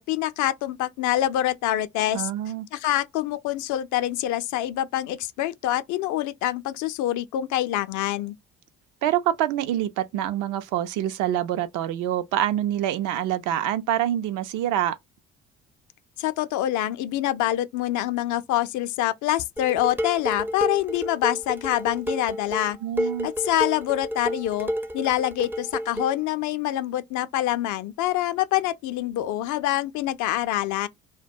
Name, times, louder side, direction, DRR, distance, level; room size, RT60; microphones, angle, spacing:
voice 1, 0.0-2.3 2.7-8.3 16.2-24.7 24.9-30.9, left 13 dB, 55° left, 0.5 m, -26 dB
voice 2, 2.1-2.7 9.0-15.0 22.8-23.3, right 11 dB, 60° right, 0.5 m, -26 dB
Dishes pots and pans, 19.6-26.2, equal, 5° right, 0.4 m, -31 dB
2.2 x 2.1 x 2.6 m
hypercardioid pair, 55°, 36 cm